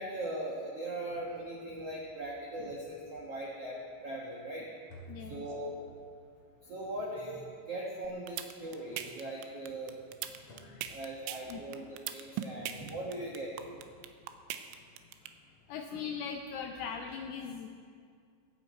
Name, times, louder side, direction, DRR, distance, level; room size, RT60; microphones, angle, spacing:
voice 1, 0.0-4.7 5.2-5.7 6.6-10.0 10.9-13.5, right 1 dB, 70° right, -3 dB, 1.4 m, -40 dB
sound 1, 4.9-6.1 7.2-8.0 8.9-9.5 10.5-11.2, right 1 dB, 45° left, 2.5 m, -53 dB
voice 2, 5.1-5.4 10.3-11.0 11.5-11.6 12.6-12.8 15.7-17.7, left 6 dB, 80° left, 4 dB, 2.3 m, -40 dB
sound 2, 8.0-15.3, right 11 dB, 85° right, 3.0 m, -39 dB
22.0 x 8.5 x 4.4 m, 2.2 s
omnidirectional pair, 5.2 m